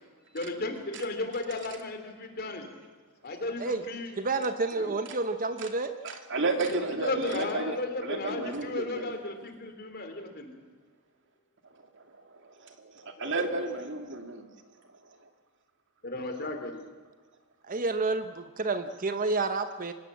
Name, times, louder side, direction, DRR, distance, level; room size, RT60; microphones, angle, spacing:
voice 1, 0.3-2.7 3.2-4.2 4.7-4.9 7.0-10.5 13.2-13.5 16.0-16.8, left 2 dB, 45° left, 6 dB, 3.2 m, -35 dB
voice 2, 4.2-5.9 17.7-19.9, right 3 dB, 40° right, 9 dB, 1.0 m, -29 dB
voice 3, 6.0-9.1 12.6-14.5, right 3 dB, 55° right, 5 dB, 2.5 m, -32 dB
24.5 x 19.5 x 7.5 m, 1.4 s
head